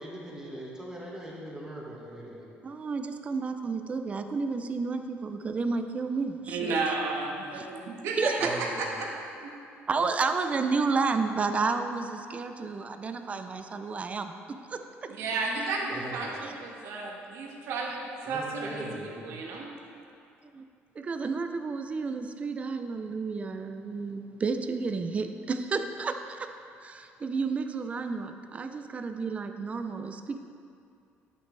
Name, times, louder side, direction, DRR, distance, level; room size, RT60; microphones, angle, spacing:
voice 1, 0.0-2.5 8.4-8.9 15.9-16.4 18.3-19.4, right 1 dB, 15° right, -4 dB, 1.7 m, -41 dB
voice 2, 2.6-6.8 7.5-7.7 8.2-8.6 9.9-15.1 16.4-16.5 20.4-20.6 21.0-26.5 26.8-30.4, right 4 dB, 30° right, 7 dB, 0.5 m, -31 dB
voice 3, 6.5-9.1 9.4-9.6 15.1-19.7, right 3 dB, 75° right, -1 dB, 1.3 m, -33 dB
11.0 x 6.7 x 3.3 m, 2.5 s
cardioid pair, 120°, 5 cm